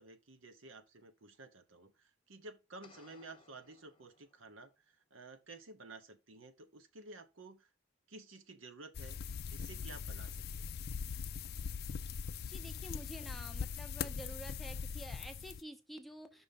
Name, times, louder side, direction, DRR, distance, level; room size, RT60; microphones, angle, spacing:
voice 1, 0.0-7.7 8.1-9.2 9.5-10.7, right 3 dB, 70° right, 0.9 m, -53 dB
sound 1, 2.8-4.7, left 4 dB, 25° left, 1.0 m, -64 dB
sound 2, 8.9-15.6, left 6 dB, 50° left, 0.4 m, -41 dB
voice 2, 12.4-16.4, right 1 dB, ahead, 0.8 m, -49 dB
5.7 x 3.9 x 5.3 m
head